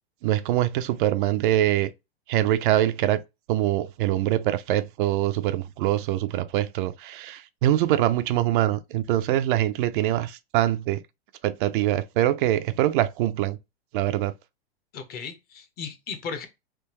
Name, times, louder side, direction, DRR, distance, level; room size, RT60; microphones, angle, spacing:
voice 1, 0.2-1.9 2.3-3.2 3.5-11.0 11.4-13.6 13.9-14.3, right 13 dB, 55° right, 0.4 m, -24 dB
voice 2, 14.9-16.5, left 6 dB, 30° left, 0.7 m, -36 dB
3.4 x 2.7 x 2.9 m
hypercardioid pair, 125°, 31 cm